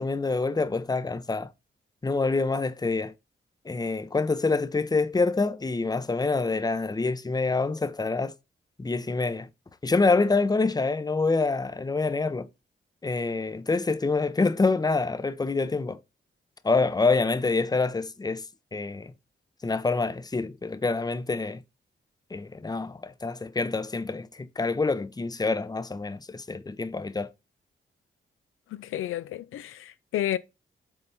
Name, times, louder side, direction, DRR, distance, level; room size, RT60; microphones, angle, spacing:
voice 1, 0.0-1.5 2.0-3.1 3.7-8.3 8.8-9.5 9.8-12.5 13.0-16.0 16.6-18.4 18.7-19.1 19.6-21.6 22.3-27.3, left 3 dB, 20° left, 0.6 m, -26 dB
voice 2, 28.7-30.4, left 12 dB, 80° left, 0.4 m, -31 dB
5.7 x 4.0 x 4.4 m
cardioid pair, 60°, 21 cm